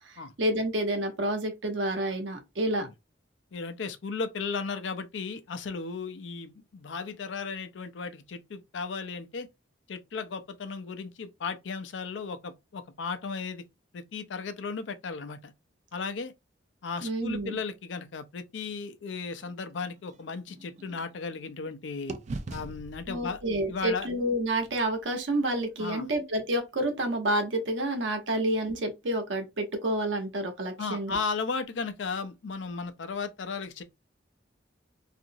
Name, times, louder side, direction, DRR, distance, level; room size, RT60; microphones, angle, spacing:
voice 1, 0.0-2.9 17.0-17.6 23.1-31.2, right 1 dB, 80° right, 0.9 m, -29 dB
voice 2, 3.5-9.5 9.9-13.6 13.9-15.5 15.9-16.3 16.8-22.2 22.5-23.4 23.7-24.1 25.8-26.1 30.8-33.8, left 4 dB, 75° left, 0.5 m, -35 dB
sound 1, 19.4-21.7 22.1-26.1, right 2 dB, 40° right, 0.4 m, -44 dB
2.8 x 2.5 x 2.6 m
head